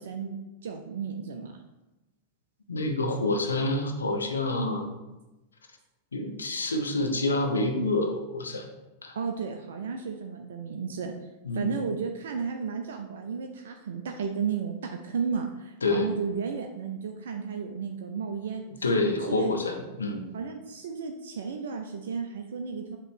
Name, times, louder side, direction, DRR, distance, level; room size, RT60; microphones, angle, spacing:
voice 1, 0.0-1.6 9.1-11.1 11.5-18.6 19.1-19.6 20.3-23.0, right 6 dB, 65° right, 4 dB, 0.5 m, -33 dB
voice 2, 2.7-4.9 6.1-8.7 9.0-9.2 11.4-11.7 15.8-16.1 18.7-20.3, left 2 dB, 80° left, 4 dB, 0.8 m, -27 dB
7.5 x 3.0 x 4.5 m, 1.0 s
figure-of-eight pair, 95°, 0 cm